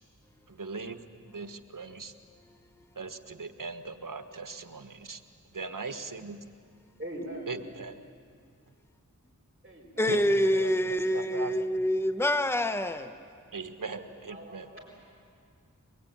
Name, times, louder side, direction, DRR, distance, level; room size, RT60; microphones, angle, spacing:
voice 1, 0.5-1.0 1.3-2.1 2.9-5.2 5.5-6.4 7.5-8.0 10.1-11.6 13.5-14.7, right 4 dB, 80° right, 1.4 m, -39 dB
voice 2, 7.0-7.5 9.6-10.2 13.9-15.0, right 1 dB, 30° right, 5.1 m, -42 dB
voice 3, 10.0-13.1, equal, 5° left, 1.0 m, -26 dB
23.5 x 21.5 x 9.4 m
wide cardioid pair, 50°, 32 cm